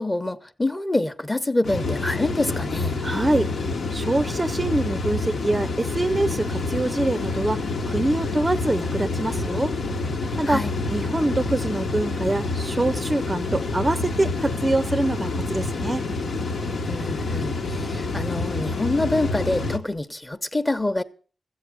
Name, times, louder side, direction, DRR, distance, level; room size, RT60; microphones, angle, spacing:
voice 1, 0.0-3.0 10.4-10.7 16.9-21.0, left 2 dB, 20° left, 0.9 m, -26 dB
sound 1, 1.6-19.8, left 3 dB, 80° left, 1.3 m, -27 dB
voice 2, 3.0-3.5 3.9-9.7 10.4-10.6 10.9-16.0, right 2 dB, 25° right, 0.5 m, -25 dB
14.0 x 8.1 x 6.2 m
cardioid pair, 80°, 0 cm